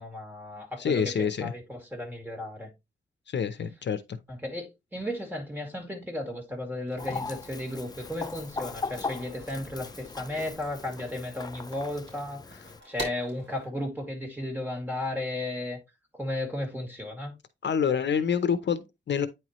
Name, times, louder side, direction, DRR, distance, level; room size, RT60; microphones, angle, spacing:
voice 1, 0.0-2.7 4.3-12.4 12.8-15.8 16.1-17.3, left 1 dB, 10° right, 2.3 m, -34 dB
voice 2, 0.8-1.5 3.3-4.2 17.6-19.3, left 7 dB, 60° left, 0.7 m, -27 dB
sound 1, 6.9-13.7, right 2 dB, 65° right, 4.3 m, -46 dB
Chicken rooster, 7.0-12.8, left 4 dB, 20° left, 0.3 m, -39 dB
9.1 x 4.5 x 3.0 m
wide cardioid pair, 155°, 20 cm